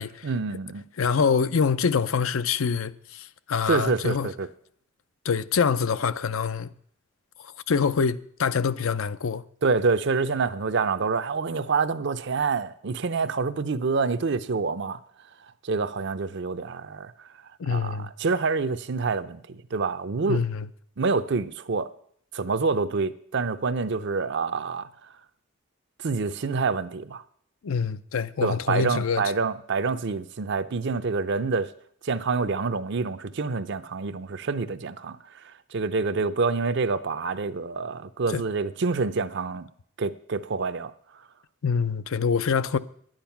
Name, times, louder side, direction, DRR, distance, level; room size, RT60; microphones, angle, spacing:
voice 1, 0.2-0.8 3.7-4.5 9.6-15.0 15.6-17.1 17.7-20.4 21.0-21.9 22.3-24.9 26.0-27.2 28.4-31.7 32.0-35.2 35.4-39.7 40.0-40.9, right 4 dB, 55° right, 0.6 m, -27 dB
voice 2, 1.0-4.3 5.2-6.7 7.7-9.4 17.6-18.1 20.3-20.7 27.6-29.2 38.3-38.4 41.6-42.8, left 6 dB, 75° left, 0.5 m, -25 dB
11.0 x 8.9 x 5.8 m
head